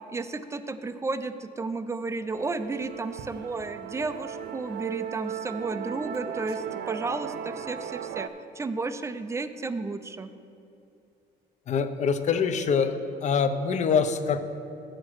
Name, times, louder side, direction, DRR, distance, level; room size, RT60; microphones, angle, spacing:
voice 1, 0.1-8.3 8.5-10.3, right 3 dB, 15° right, 11 dB, 0.4 m, -33 dB
Musical instrument, 2.3-8.3, right 8 dB, 70° right, 0.5 m, -36 dB
voice 2, 11.7-12.9 13.2-14.4, left 6 dB, 45° left, 10 dB, 0.6 m, -24 dB
7.3 x 6.5 x 6.2 m, 2.8 s
cardioid pair, 110°, 17 cm